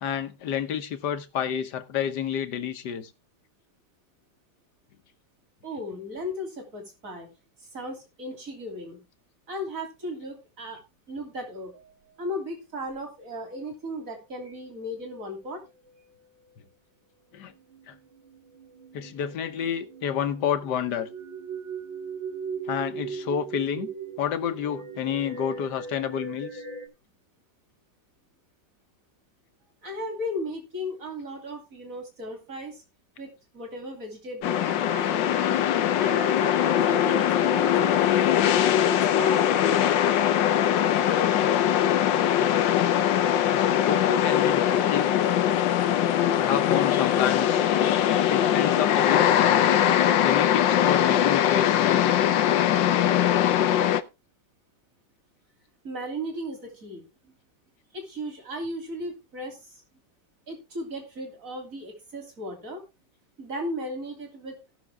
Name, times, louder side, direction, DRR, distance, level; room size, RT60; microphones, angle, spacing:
voice 1, 0.0-3.1 17.3-17.5 17.9-18.0 18.9-21.1 22.7-23.9 24.2-26.6 43.9-45.2 46.3-47.6 48.3-49.7 50.2-52.2, left 8 dB, 65° left, 1.6 m, -29 dB
voice 2, 5.6-7.3 7.7-9.0 9.5-10.8 11.1-11.7 12.2-15.6 29.8-32.8 33.2-35.6 36.0-38.5 38.9-40.0 55.8-57.3 57.9-59.8 60.5-62.8 63.4-64.6, equal, 45° right, 3.4 m, -36 dB
sound 1, 11.7-12.3 12.9-13.0 14.4-14.8 15.1-16.0 17.4-26.9, right 6 dB, 85° right, 3.2 m, -40 dB
sound 2, 34.4-54.0, left 10 dB, 85° left, 1.5 m, -21 dB
17.5 x 6.3 x 3.4 m
omnidirectional pair, 2.0 m